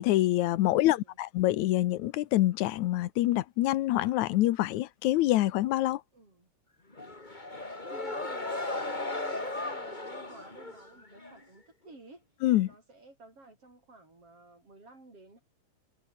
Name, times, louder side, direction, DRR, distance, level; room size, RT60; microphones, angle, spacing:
voice 1, 0.0-6.0 12.4-12.7, left 15 dB, 75° left, 2.2 m, -26 dB
voice 2, 0.7-1.2 6.1-6.5 7.9-12.3 12.6-15.4, right 2 dB, 45° right, 9.1 m, -53 dB
sound 1, 6.9-11.4, left 2 dB, 15° left, 2.8 m, -36 dB
omnidirectional pair, 3.5 m